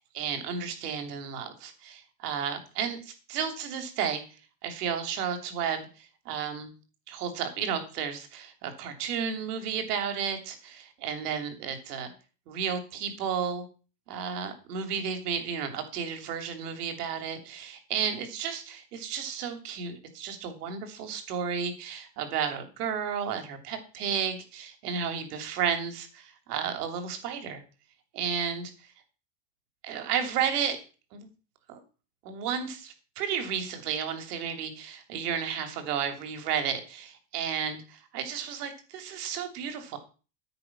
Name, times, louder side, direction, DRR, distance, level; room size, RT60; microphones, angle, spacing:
voice 1, 0.1-4.2 4.6-6.7 7.1-12.1 12.5-13.6 14.1-27.6 28.1-28.9 29.8-30.8 31.1-31.3 31.7-31.8 32.2-40.0, right 7 dB, 65° right, 6 dB, 3.2 m, -32 dB
9.9 x 9.6 x 5.9 m, 0.35 s
supercardioid pair, 170°, 49 cm